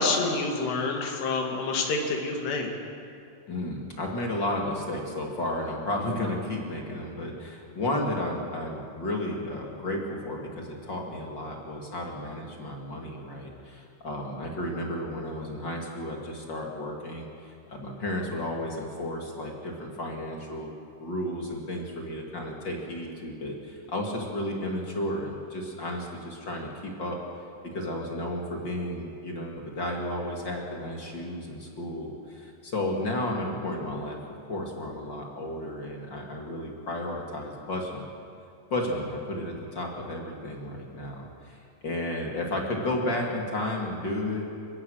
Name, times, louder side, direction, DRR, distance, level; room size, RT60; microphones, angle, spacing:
voice 1, 0.0-2.7, left 3 dB, 85° left, 1 dB, 4.4 m, -27 dB
voice 2, 3.5-20.7 21.0-27.2 27.6-34.2 34.5-38.1 38.7-44.5, left 1 dB, 35° left, 0 dB, 2.2 m, -33 dB
28.5 x 16.0 x 6.5 m, 2.5 s
omnidirectional pair, 4.7 m